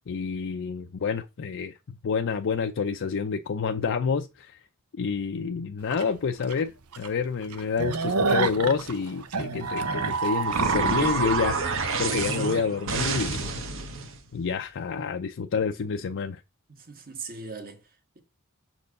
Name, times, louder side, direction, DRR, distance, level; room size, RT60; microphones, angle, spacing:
voice 1, 0.1-1.8 2.0-4.6 4.9-11.6 12.0-13.4 14.3-16.4, left 5 dB, 60° left, 0.5 m, -28 dB
sound 1, 5.9-6.0 6.5-6.6 6.9-7.1 7.4-11.2, right 4 dB, 85° right, 0.8 m, -28 dB
sound 2, 9.6-14.2, right 4 dB, 65° right, 1.2 m, -28 dB
voice 2, 16.7-18.2, right 4 dB, 45° right, 1.5 m, -41 dB
6.2 x 4.4 x 6.5 m
head